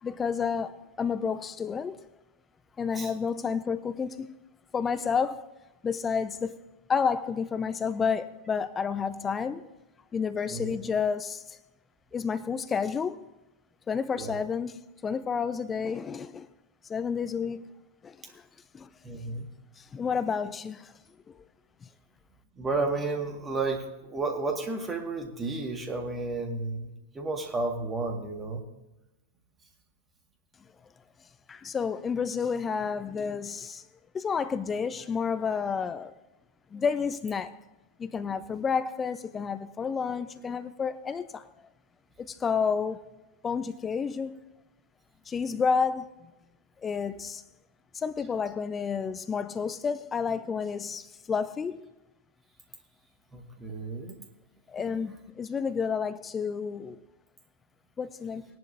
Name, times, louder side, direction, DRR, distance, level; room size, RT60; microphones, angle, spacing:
voice 1, 0.0-2.0 2.8-4.3 4.7-5.4 5.8-6.6 6.9-9.7 10.1-11.6 12.1-13.2 13.9-16.5 16.9-17.7 18.0-18.4 18.7-18.9 19.8-20.9 21.3-21.4 21.8-21.9 31.5-33.8 34.1-36.1 36.7-37.5 38.0-41.5 42.2-43.0 43.4-44.4 45.3-46.3 46.8-47.4 47.9-51.9 54.7-57.0 58.0-58.5, left 6 dB, 20° left, 0.5 m, -30 dB
voice 2, 19.0-19.4 22.6-28.6 53.3-54.1, right 3 dB, 15° right, 2.0 m, -32 dB
19.5 x 11.0 x 2.7 m
figure-of-eight pair, 90°, 0 cm